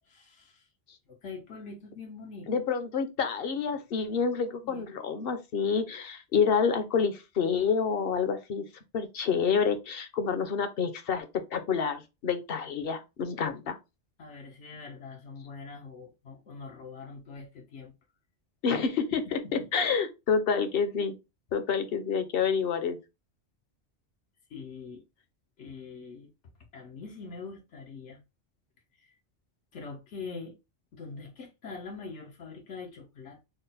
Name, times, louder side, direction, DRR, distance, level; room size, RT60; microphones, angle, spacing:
voice 1, 0.1-0.7 1.1-2.6 4.6-4.8 14.2-17.9 19.4-19.7 24.5-25.0 25.6-26.3 26.7-28.2 29.0-29.1 29.7-30.6 30.9-33.4, left 4 dB, 85° left, 1.2 m, -43 dB
voice 2, 2.5-8.6 8.9-11.3 11.5-13.8 18.6-21.2 21.5-23.0, left 6 dB, 60° left, 0.9 m, -28 dB
3.8 x 2.1 x 3.9 m
omnidirectional pair, 1.2 m